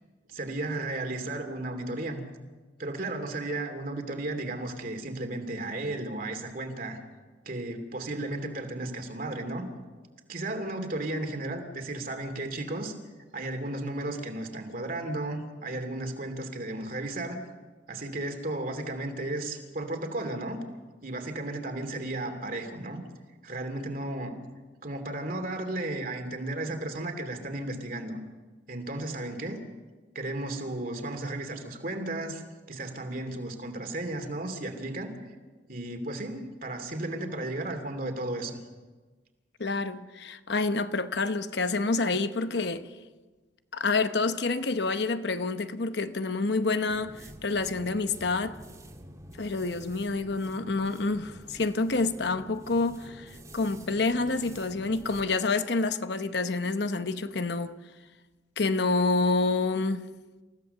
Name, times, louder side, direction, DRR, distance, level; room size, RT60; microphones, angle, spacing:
voice 1, 0.3-2.2 2.8-7.0 7.5-9.7 10.3-12.9 13.3-17.4 17.9-20.6 21.0-23.0 23.4-24.4 24.8-28.2 28.7-29.6 30.1-32.4 32.7-35.1 35.7-38.6, right 2 dB, 50° right, 2.7 m, -34 dB
voice 2, 39.6-42.9 43.7-48.6 49.4-57.7 58.6-60.0, left 3 dB, 65° left, 0.9 m, -28 dB
sound 1, 46.9-55.3, right 1 dB, 20° right, 1.8 m, -48 dB
28.0 x 15.5 x 6.7 m
head